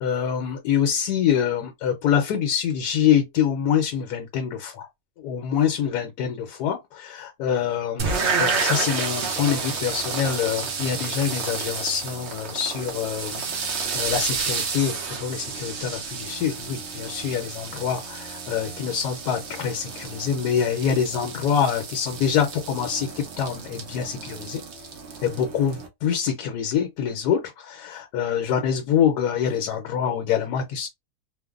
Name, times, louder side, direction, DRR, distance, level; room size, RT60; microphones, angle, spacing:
voice 1, 0.0-4.9 5.2-24.6 25.2-30.9, left 8 dB, 75° left, 1.1 m, -25 dB
sound 1, 8.0-25.9, right 5 dB, 55° right, 0.8 m, -31 dB
3.1 x 2.1 x 2.3 m
omnidirectional pair, 1.8 m